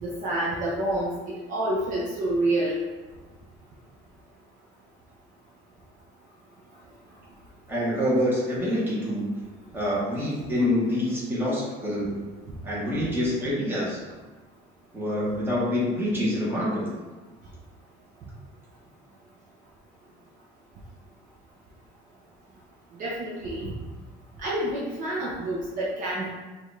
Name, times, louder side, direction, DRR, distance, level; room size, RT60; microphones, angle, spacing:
voice 1, 0.0-2.8 23.0-23.7 24.4-26.3, right 1 dB, 40° right, -5 dB, 0.6 m, -28 dB
voice 2, 7.7-9.3 9.7-12.2 12.6-14.0 14.9-16.9, left 1 dB, 10° right, -7 dB, 1.0 m, -26 dB
4.6 x 2.4 x 3.2 m, 1.3 s
cardioid pair, 170°, 21 cm